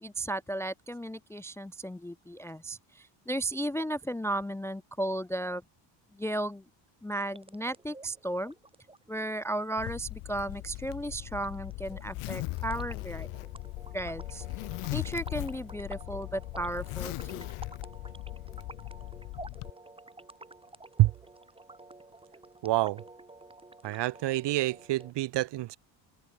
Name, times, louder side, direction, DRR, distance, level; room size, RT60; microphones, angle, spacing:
voice 1, 0.0-5.6 6.1-6.6 7.0-8.5 9.1-13.3 13.9-14.4 14.9-17.5, right 1 dB, 5° left, 0.4 m, -35 dB
sound 1, 7.1-25.1, right 2 dB, 10° right, 4.0 m, -51 dB
Zipper (clothing), 9.8-19.7, left 20 dB, 90° left, 2.2 m, -39 dB
voice 2, 22.6-23.0 23.8-25.8, right 16 dB, 55° right, 0.8 m, -27 dB
open air
cardioid pair, 135°, 49 cm